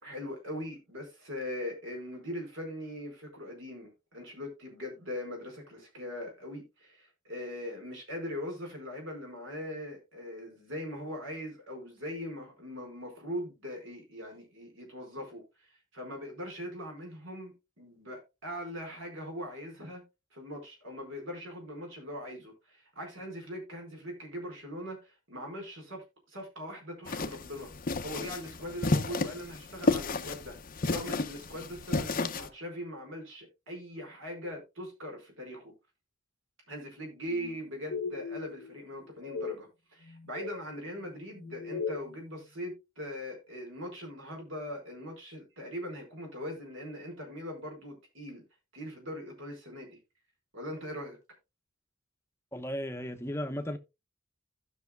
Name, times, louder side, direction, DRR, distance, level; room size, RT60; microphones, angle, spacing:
voice 1, 0.0-20.0 20.3-27.7 28.0-30.6 30.9-35.7 36.7-48.4 48.7-50.0 50.5-51.2, equal, 65° right, 4.7 m, -41 dB
sound 1, 27.1-32.5, left 3 dB, 45° left, 0.7 m, -32 dB
sound 2, 37.3-37.6 37.9-38.7 39.2-39.5 40.1-40.6 41.4-42.1, left 5 dB, 70° left, 0.8 m, -37 dB
voice 2, 52.5-53.8, equal, 15° left, 0.9 m, -35 dB
16.0 x 6.3 x 2.2 m
head